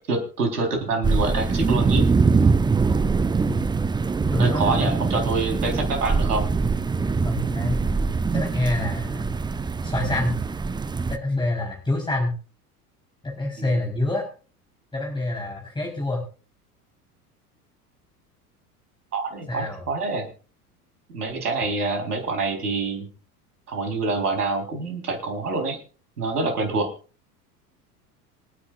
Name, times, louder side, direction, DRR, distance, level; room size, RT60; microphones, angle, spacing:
voice 1, 0.1-2.1 3.5-3.7 4.4-6.4 13.6-13.8 19.1-20.3 21.1-23.1 23.7-25.8 26.2-26.9, right 3 dB, 75° right, 4 dB, 4.1 m, -26 dB
sound 1, 1.0-11.2, right 4 dB, 10° right, 0.6 m, -23 dB
voice 2, 4.3-5.0 7.2-7.8 8.3-9.3 9.8-10.3 11.1-12.3 13.2-14.2 14.9-16.2 19.5-19.8 21.8-21.9, left 2 dB, 10° left, -1 dB, 4.0 m, -26 dB
26.5 x 9.7 x 2.5 m, 0.37 s
figure-of-eight pair, 75°, 46 cm